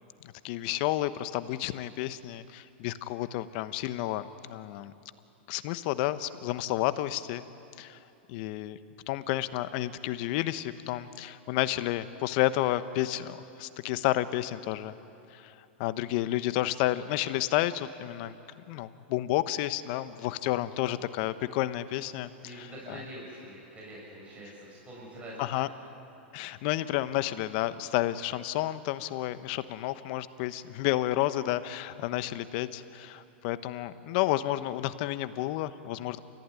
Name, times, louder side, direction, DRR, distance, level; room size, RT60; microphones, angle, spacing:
voice 1, 0.2-4.9 5.5-7.4 7.8-8.0 8.3-8.8 9.1-14.9 15.3-15.5 15.8-18.3 18.7-23.0 25.4-25.7 26.3-36.2, left 15 dB, 55° left, 13 dB, 1.1 m, -31 dB
voice 2, 20.6-21.0 22.4-25.3, right 1 dB, 20° right, -5 dB, 7.3 m, -45 dB
29.5 x 15.0 x 9.7 m, 2.8 s
hypercardioid pair, 115°, 6 cm